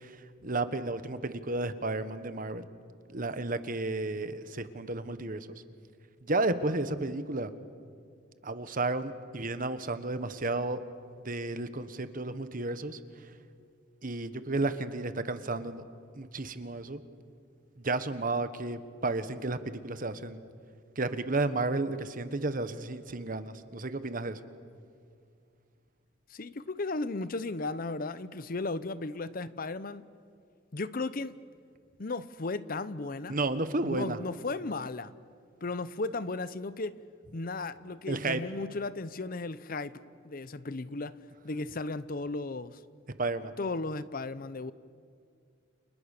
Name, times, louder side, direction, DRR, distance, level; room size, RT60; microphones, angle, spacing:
voice 1, 0.0-2.7 3.1-5.5 6.2-7.5 8.4-10.8 11.2-13.0 14.0-15.8 16.1-17.0 17.8-20.4 21.0-24.4 33.3-34.2 38.1-38.4 43.2-43.5, right 2 dB, 45° right, 1.3 m, -32 dB
voice 2, 26.3-30.1 30.7-31.4 32.0-33.4 33.8-35.1 35.6-37.0 37.3-40.0 40.2-41.2 41.4-42.8 43.6-44.7, left 3 dB, 45° left, 0.7 m, -35 dB
29.5 x 29.0 x 6.7 m
head